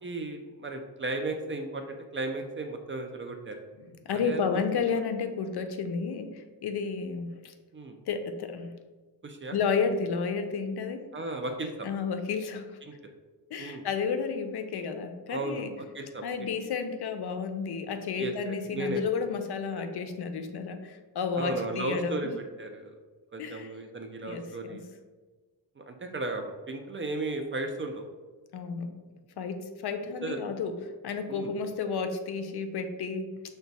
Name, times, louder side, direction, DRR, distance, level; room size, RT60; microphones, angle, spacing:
voice 1, 0.0-3.6 4.1-4.6 7.7-7.9 9.2-9.6 11.1-11.9 12.8-12.9 13.6-13.8 15.3-15.7 15.9-16.2 18.2-19.0 21.4-23.0 23.3-24.8 25.8-28.0 30.2-30.4 31.3-31.5, right 2 dB, 30° right, 4 dB, 0.4 m, -35 dB
voice 2, 4.0-7.5 8.1-8.7 9.5-11.0 11.8-12.7 13.5-15.7 16.2-22.3 23.4-23.7 24.2-24.8 28.5-28.9 29.4-30.7 31.0-33.3, left 5 dB, 70° left, 8 dB, 0.5 m, -31 dB
5.8 x 2.2 x 4.0 m, 1.3 s
wide cardioid pair, 135°, 41 cm